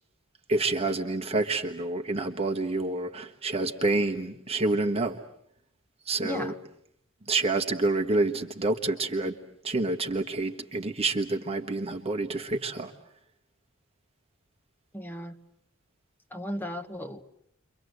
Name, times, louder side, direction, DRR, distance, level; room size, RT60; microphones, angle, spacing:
voice 1, 0.5-5.2 6.1-6.5 7.3-9.4 9.6-12.9, right 2 dB, 30° right, 1.3 m, -28 dB
voice 2, 6.2-6.5 14.9-15.3 16.3-17.2, equal, 10° left, 1.4 m, -35 dB
29.5 x 24.5 x 8.0 m
head